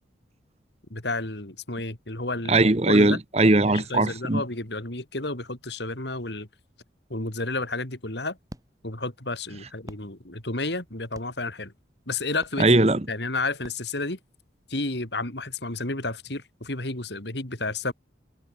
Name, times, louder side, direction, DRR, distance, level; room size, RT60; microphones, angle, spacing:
voice 1, 0.9-2.6 2.9-3.2 3.7-6.5 7.1-8.4 8.8-11.7 12.1-12.7 13.1-14.2 14.7-17.9, left 2 dB, 65° left, 3.5 m, -31 dB
voice 2, 2.5-4.4 12.6-13.1, right 2 dB, 35° right, 1.1 m, -19 dB
sound 1, 7.8-14.7, equal, 20° right, 6.9 m, -51 dB
head